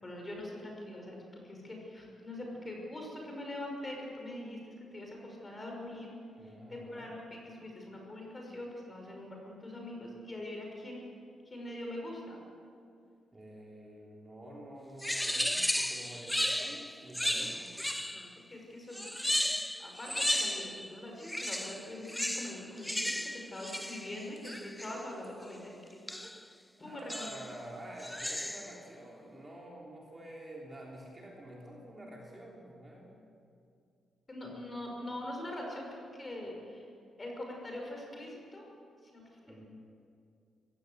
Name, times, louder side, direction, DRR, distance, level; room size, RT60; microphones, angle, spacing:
voice 1, 0.0-1.2 1.4-6.1 6.4-11.0 11.4-12.4 17.4-17.5 18.1-19.4 19.8-26.0 26.8-27.3 34.3-36.9 37.2-38.7 39.0-39.7, left 1 dB, 20° left, 0 dB, 5.8 m, -43 dB
voice 2, 6.4-7.1 13.3-17.8 26.8-33.2 39.5-39.7, right 1 dB, 20° right, -3 dB, 3.4 m, -48 dB
sound 1, 15.0-18.4 18.9-20.9 21.2-25.0 26.1-26.4 27.1-27.6 28.0-28.8, equal, 5° left, 0.5 m, -34 dB
21.5 x 16.5 x 8.1 m, 2.4 s
cardioid pair, 135°, 0 cm